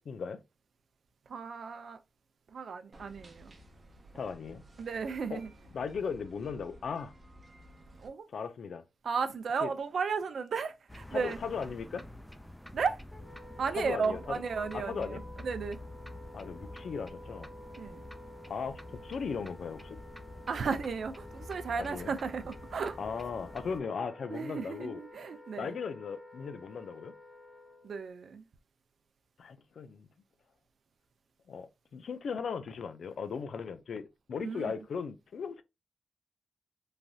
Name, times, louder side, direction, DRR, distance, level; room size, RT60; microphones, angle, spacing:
voice 1, 0.1-0.4 4.1-4.6 5.3-5.4 5.7-7.1 8.3-8.8 9.6-9.7 11.1-12.0 13.8-14.2 14.7-15.2 16.3-17.5 18.5-20.0 21.8-22.1 23.0-25.0 25.6-27.1 29.4-30.1 31.5-35.6, left 6 dB, 80° left, 0.3 m, -37 dB
voice 2, 1.3-2.0 2.5-3.5 4.8-5.5 8.0-8.3 9.0-11.4 12.7-13.0 13.6-15.8 17.8-18.0 20.5-23.0 24.3-25.8 27.8-28.5 34.4-34.7, right 5 dB, 75° right, 0.4 m, -34 dB
sound 1, 2.9-8.1, right 1 dB, 40° right, 0.7 m, -55 dB
sound 2, 10.9-23.8, left 1 dB, ahead, 0.4 m, -48 dB
Wind instrument woodwind instrument, 13.1-28.0, left 1 dB, 20° left, 0.8 m, -52 dB
3.1 x 2.6 x 2.3 m
wide cardioid pair, 130°, 0 cm